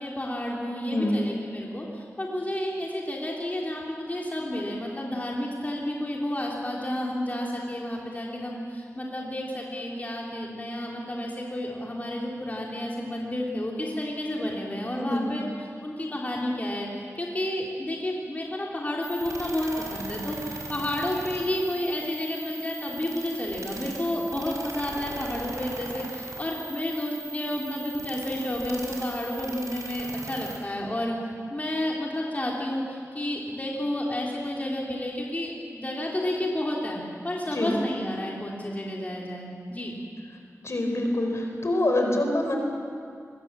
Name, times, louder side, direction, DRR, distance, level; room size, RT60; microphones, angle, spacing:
voice 1, 0.0-31.2 31.5-39.9, left 1 dB, 30° left, -3 dB, 3.5 m, -31 dB
voice 2, 0.9-1.2 15.0-15.5 37.5-37.7 40.6-42.6, left 1 dB, 60° left, 2 dB, 4.4 m, -26 dB
sound 1, 19.0-30.6, right 3 dB, 85° right, 4.4 m, -39 dB
25.0 x 21.5 x 7.6 m, 2.3 s
wide cardioid pair, 90°, 5 cm